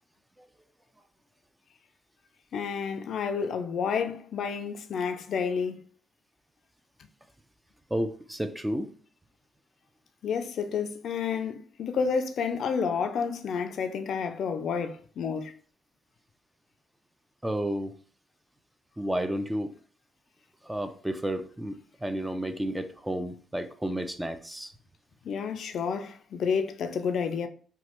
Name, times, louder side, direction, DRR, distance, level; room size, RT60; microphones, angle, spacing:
voice 1, 2.5-5.8 10.2-15.5 25.2-27.5, left 6 dB, 65° left, 0.4 m, -30 dB
voice 2, 7.9-8.9 17.4-17.9 19.0-19.7 20.7-21.7 22.0-24.7, right 1 dB, 10° right, 0.3 m, -31 dB
3.0 x 2.2 x 2.9 m
cardioid pair, 90°, 0 cm